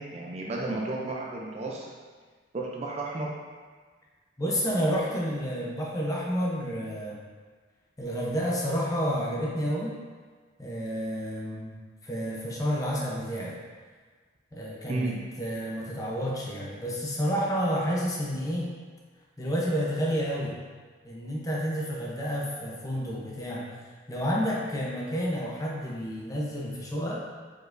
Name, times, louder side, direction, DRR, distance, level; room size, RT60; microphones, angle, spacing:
voice 1, 0.0-1.9 2.5-3.4 14.9-15.2, right 2 dB, 35° right, -2 dB, 0.4 m, -32 dB
voice 2, 4.4-7.2 8.0-10.0 10.6-11.7 12.0-13.6 14.5-15.1 15.4-18.7 19.4-20.6 21.0-23.7 24.1-27.2, equal, 15° left, -4 dB, 0.6 m, -30 dB
4.7 x 4.3 x 2.5 m, 1.5 s
head